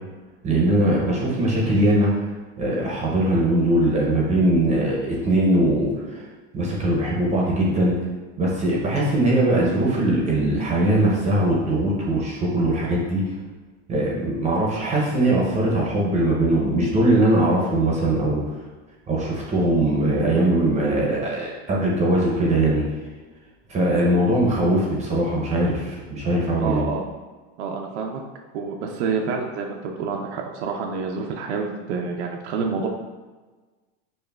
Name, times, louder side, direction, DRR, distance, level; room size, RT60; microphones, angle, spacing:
voice 1, 0.4-2.3 2.6-6.3 6.5-8.0 8.4-13.2 13.9-18.4 19.1-22.8 23.7-26.8, right 1 dB, 20° right, -3 dB, 0.5 m, -21 dB
voice 2, 26.6-27.0 27.6-28.2 28.5-32.9, right 5 dB, 90° right, 1 dB, 0.5 m, -28 dB
5.2 x 2.1 x 2.2 m, 1.3 s
supercardioid pair, 135°, 32 cm